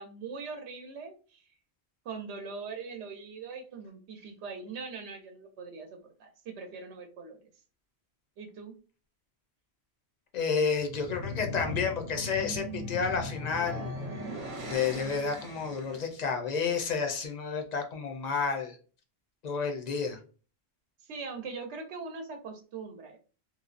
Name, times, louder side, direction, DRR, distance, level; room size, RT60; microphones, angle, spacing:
voice 1, 0.0-1.4 2.0-7.5 8.4-8.7 21.0-23.2, right 4 dB, 85° right, 4 dB, 0.9 m, -41 dB
voice 2, 10.3-13.9 14.6-18.8 19.4-20.2, left 5 dB, 50° left, 4 dB, 0.5 m, -30 dB
sound 1, 10.8-16.1, left 1 dB, 50° right, 0.8 m, -38 dB
3.0 x 2.0 x 2.4 m, 0.37 s
omnidirectional pair, 1.1 m